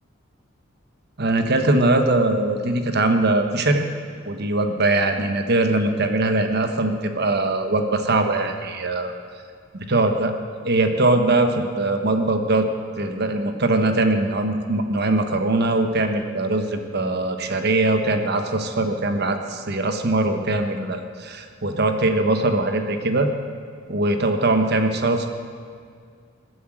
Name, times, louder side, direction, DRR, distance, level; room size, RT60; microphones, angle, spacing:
voice 1, 1.2-3.8 4.2-9.1 9.9-10.3 10.6-12.7 13.0-23.3 23.9-25.3, right 2 dB, 50° right, 6 dB, 1.2 m, -21 dB
20.0 x 7.9 x 7.8 m, 2.1 s
head